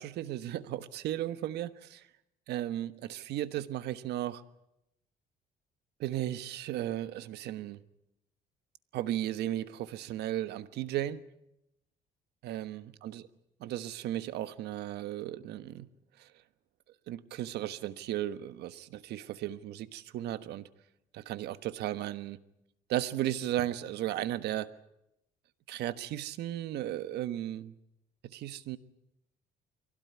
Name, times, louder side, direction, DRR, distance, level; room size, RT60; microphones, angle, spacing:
voice 1, 0.0-2.0 2.5-4.4 6.0-7.8 8.9-11.2 12.4-13.2 13.6-15.9 16.2-16.3 17.1-20.7 21.1-22.4 22.9-24.7 25.7-27.7 28.2-28.8, right 13 dB, 75° right, 13 dB, 1.3 m, -35 dB
23.5 x 17.0 x 9.5 m, 0.83 s
cardioid pair, 110°, 17 cm